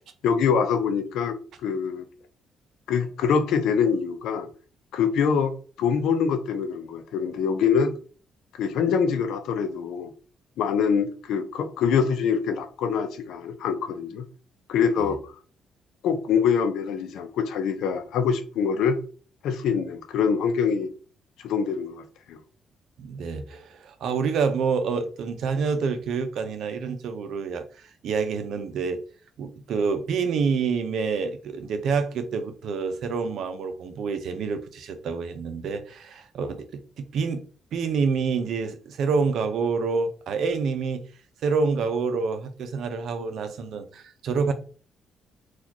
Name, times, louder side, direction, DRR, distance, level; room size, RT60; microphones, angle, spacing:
voice 1, 0.2-2.1 2.9-4.5 4.9-5.5 5.8-7.9 8.6-10.1 10.6-14.3 14.7-15.3 16.0-19.0 19.4-20.9 21.4-22.4, left 6 dB, 85° left, 0.6 m, -24 dB
voice 2, 23.0-29.0 29.4-37.4 37.7-41.0 41.4-44.5, right 5 dB, 70° right, 0.6 m, -27 dB
4.0 x 2.4 x 2.9 m
cardioid pair, 90°, 0 cm